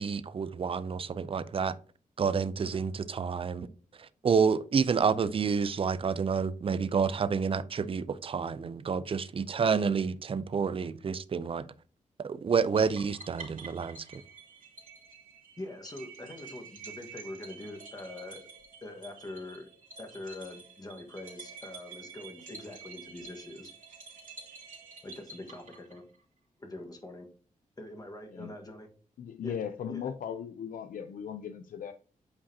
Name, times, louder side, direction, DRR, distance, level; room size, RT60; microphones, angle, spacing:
voice 1, 0.0-1.7 2.2-3.7 4.0-11.7 12.2-14.2, right 6 dB, 40° right, 0.5 m, -29 dB
sound 1, 12.8-26.2, right 4 dB, 65° right, 2.6 m, -49 dB
voice 2, 15.6-18.5 18.8-19.7 20.0-23.7 25.0-26.0 26.6-27.3 27.8-28.9 29.4-29.6 29.9-30.1, left 2 dB, 25° left, 1.5 m, -43 dB
voice 3, 29.2-31.9, left 8 dB, 75° left, 0.5 m, -38 dB
8.5 x 4.9 x 2.8 m
wide cardioid pair, 110°, 14 cm